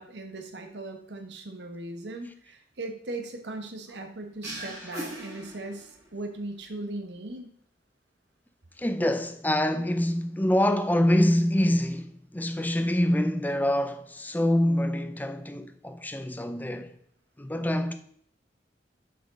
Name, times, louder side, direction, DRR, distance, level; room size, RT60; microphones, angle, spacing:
voice 1, 0.0-7.5, right 2 dB, 75° right, 1.1 m, -38 dB
sound 1, 4.4-6.2, right 1 dB, 20° right, 1.9 m, -39 dB
voice 2, 8.8-16.9 17.4-17.9, left 1 dB, 10° left, 0.4 m, -25 dB
7.0 x 6.0 x 3.7 m
head